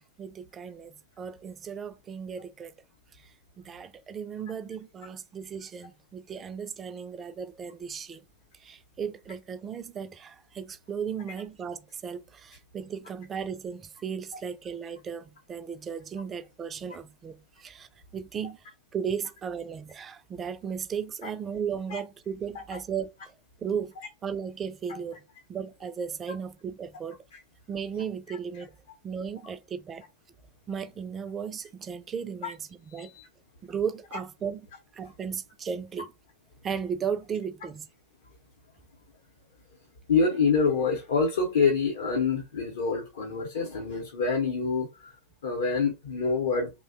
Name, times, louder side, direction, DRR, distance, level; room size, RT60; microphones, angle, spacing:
voice 1, 0.0-2.7 3.1-8.2 8.5-18.7 18.9-23.9 24.2-25.2 25.5-27.2 27.7-28.7 29.0-30.0 30.7-33.1 33.6-34.6 34.9-36.1 36.6-37.9, right 7 dB, 20° right, 0.3 m, -36 dB
voice 2, 32.9-33.3 40.1-45.2 45.4-46.7, left 4 dB, 60° left, 0.7 m, -26 dB
2.6 x 2.1 x 2.4 m
figure-of-eight pair, 90°, 0 cm